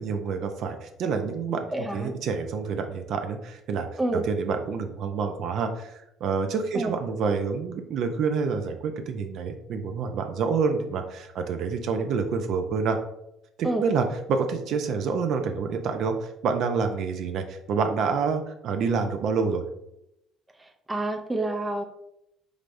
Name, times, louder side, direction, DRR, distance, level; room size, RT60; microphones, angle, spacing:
voice 1, 0.0-3.9 4.1-13.0 13.6-19.6, right 5 dB, 60° right, 6 dB, 0.5 m, -28 dB
voice 2, 1.7-2.1 4.0-4.2 6.7-6.9 13.6-13.8 20.9-21.8, right 2 dB, 10° right, 3 dB, 0.4 m, -28 dB
5.0 x 3.3 x 2.6 m, 0.82 s
cardioid pair, 125°, 0 cm